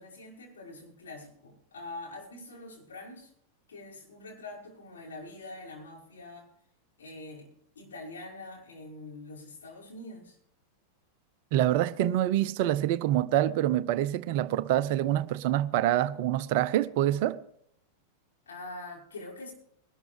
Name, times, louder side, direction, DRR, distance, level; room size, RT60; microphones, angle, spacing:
voice 1, 0.0-3.3 3.7-6.5 7.0-7.5 7.8-10.4 18.5-19.5, left 2 dB, 65° left, 5.7 m, -44 dB
voice 2, 11.5-17.4, right 13 dB, 50° right, 0.6 m, -26 dB
21.0 x 13.0 x 3.3 m
figure-of-eight pair, 90°, 0 cm